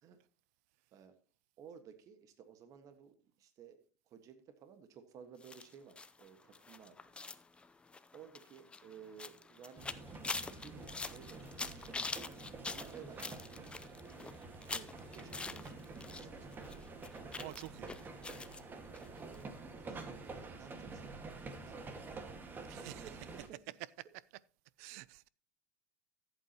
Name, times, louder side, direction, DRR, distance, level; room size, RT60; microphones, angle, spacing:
voice 1, 1.6-3.8 4.1-7.0 8.1-11.9 12.6-14.3 14.6-16.4 19.2-23.8, right 7 dB, 40° right, 1.5 m, -56 dB
sound 1, 5.4-16.3 16.5-18.6 18.9-19.1 19.3-19.4, left 4 dB, 10° left, 0.6 m, -45 dB
sound 2, 9.8-23.5, right 3 dB, 25° right, 1.7 m, -48 dB
voice 2, 17.4-17.9 22.7-22.9 24.8-25.3, right 19 dB, 70° right, 0.5 m, -48 dB
14.5 x 8.3 x 2.9 m
supercardioid pair, 125°, 9 cm